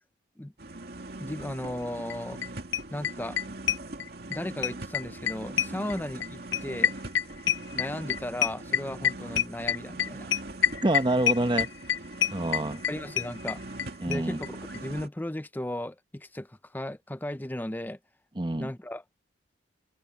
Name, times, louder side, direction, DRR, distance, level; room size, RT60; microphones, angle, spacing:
sound 1, 0.6-15.1, right 2 dB, 55° right, 2.5 m, -41 dB
voice 1, 1.2-2.4 2.9-3.4 4.3-7.0 7.7-10.3 12.9-13.6 14.1-18.0 18.6-19.0, left 1 dB, 10° left, 0.5 m, -36 dB
sound 2, 2.1-2.2 2.4-2.5 2.7-4.4 4.6-13.9 14.1-14.2 14.4-14.5 14.7-14.8, left 9 dB, 80° left, 0.7 m, -26 dB
voice 2, 10.8-11.7 12.3-12.8 14.0-14.4 18.4-18.7, right 1 dB, 25° right, 0.9 m, -27 dB
head